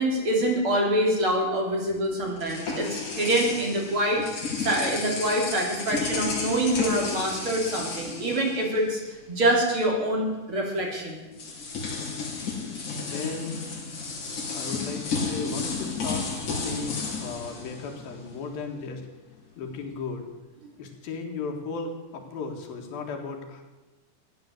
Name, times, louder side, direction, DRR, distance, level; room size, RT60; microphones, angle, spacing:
voice 1, 0.0-9.0 9.3-11.2, right 1 dB, 40° right, -1 dB, 3.8 m, -25 dB
sound 1, 1.9-9.2 9.4-9.7 10.8-10.9 11.3-18.5, left 4 dB, 60° left, 4.5 m, -33 dB
voice 2, 13.0-13.9 14.5-19.1 19.6-20.3 20.8-23.6, left 4 dB, 90° left, 3 dB, 3.7 m, -36 dB
15.0 x 10.5 x 7.9 m, 1.1 s
omnidirectional pair, 4.1 m